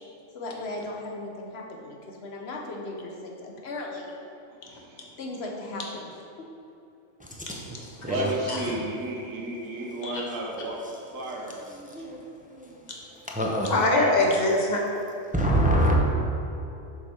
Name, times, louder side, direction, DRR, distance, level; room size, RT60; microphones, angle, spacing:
voice 1, 0.3-4.1 5.2-6.1 6.4-6.5 8.6-8.7, left 2 dB, 55° left, -1 dB, 1.2 m, -37 dB
voice 2, 4.5-5.2 8.0-12.1, right 1 dB, 80° right, -2 dB, 1.3 m, -33 dB
voice 3, 7.5-8.0 8.5-8.6 10.0-10.2 13.6-14.8, left 2 dB, 35° left, -1 dB, 1.1 m, -24 dB
voice 4, 11.7-12.2 12.5-12.9 13.3-13.7 15.3-15.9, right 1 dB, 10° right, -1 dB, 0.4 m, -25 dB
7.1 x 5.5 x 4.4 m, 2.8 s
omnidirectional pair, 1.4 m